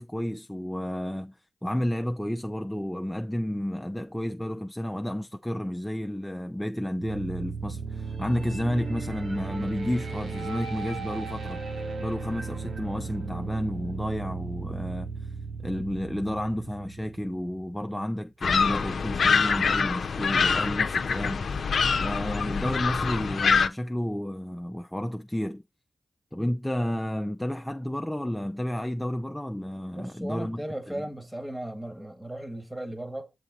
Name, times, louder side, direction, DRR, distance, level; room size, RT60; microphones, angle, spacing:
voice 1, 0.0-11.6 12.0-15.1 15.6-21.7 22.0-25.6 26.3-31.0, left 1 dB, 5° left, 0.5 m, -31 dB
sound 1, 7.0-17.9, right 4 dB, 80° right, 1.6 m, -36 dB
sound 2, 18.4-23.7, left 5 dB, 70° left, 0.6 m, -25 dB
voice 2, 29.9-33.3, right 1 dB, 15° right, 1.8 m, -36 dB
6.9 x 3.8 x 3.9 m
cardioid pair, 45°, 0 cm